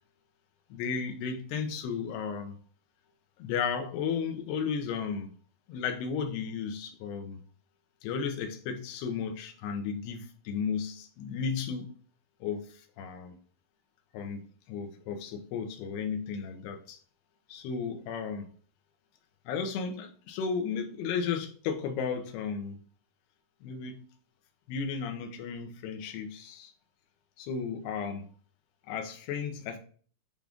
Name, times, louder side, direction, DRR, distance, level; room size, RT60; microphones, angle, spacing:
voice 1, 0.7-2.6 3.4-5.3 5.7-7.4 8.0-11.9 12.4-13.4 14.1-17.0 17.5-18.5 19.5-22.8 23.6-24.1 24.7-26.7 27.4-28.3 28.9-29.8, left 6 dB, 80° left, 3.0 m, -34 dB
8.7 x 3.8 x 3.5 m
omnidirectional pair, 4.7 m